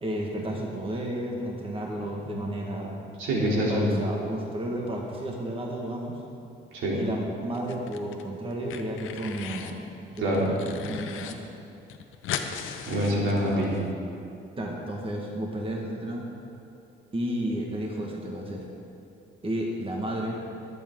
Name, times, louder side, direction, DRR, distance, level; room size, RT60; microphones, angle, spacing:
voice 1, 0.0-2.9 3.7-6.2 6.9-9.8 10.1-11.4 14.6-16.2 17.1-18.7 19.4-20.4, right 1 dB, 25° right, -1 dB, 1.8 m, -32 dB
voice 2, 3.2-3.9 6.7-7.0 10.2-10.5 12.9-13.8, equal, 80° right, -5 dB, 3.3 m, -25 dB
sound 1, 7.5-8.2 8.5-9.8 10.2-11.3 11.6-11.7 11.9-13.8, left 8 dB, 85° left, 0.9 m, -37 dB
20.0 x 8.4 x 3.8 m, 2.7 s
cardioid pair, 90°, 20 cm